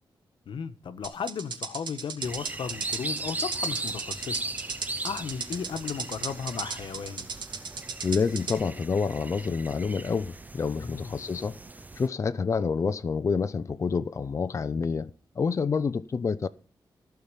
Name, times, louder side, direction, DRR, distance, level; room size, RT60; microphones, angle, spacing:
voice 1, 0.5-4.4 5.0-7.3 10.8-11.1, left 6 dB, 85° left, 1.2 m, -35 dB
sound 1, 1.0-8.6, right 5 dB, 65° right, 2.6 m, -36 dB
sound 2, 2.2-12.1, right 2 dB, 20° right, 0.7 m, -38 dB
voice 2, 8.0-11.5 12.0-15.1 15.4-16.5, left 5 dB, 35° left, 0.5 m, -28 dB
15.5 x 5.8 x 8.8 m
wide cardioid pair, 160°, 8 cm